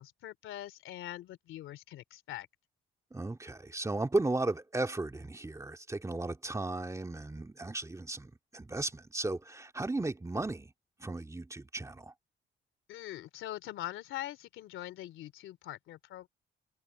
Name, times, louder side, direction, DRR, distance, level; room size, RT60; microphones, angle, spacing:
voice 1, 0.0-2.5 12.9-16.3, left 14 dB, 85° left, 3.0 m, -43 dB
voice 2, 3.1-10.7 11.0-12.1, right 2 dB, 15° right, 2.2 m, -35 dB
cardioid pair, 90°, 20 cm